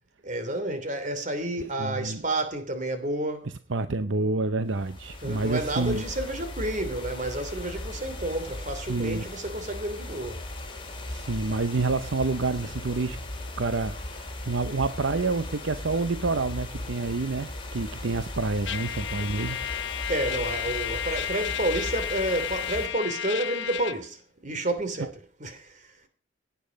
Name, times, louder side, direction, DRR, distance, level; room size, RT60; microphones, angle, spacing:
voice 1, 0.2-3.5 5.2-10.4 20.1-26.0, right 1 dB, 40° right, 3.1 m, -30 dB
voice 2, 1.8-2.2 3.7-6.0 8.9-9.5 11.1-13.3 13.6-19.7, right 3 dB, 65° right, 0.7 m, -28 dB
sound 1, 4.7-22.9, left 1 dB, 25° left, 3.9 m, -38 dB
Trumpet, 18.7-24.0, left 10 dB, 60° left, 0.6 m, -32 dB
17.0 x 9.4 x 5.2 m
head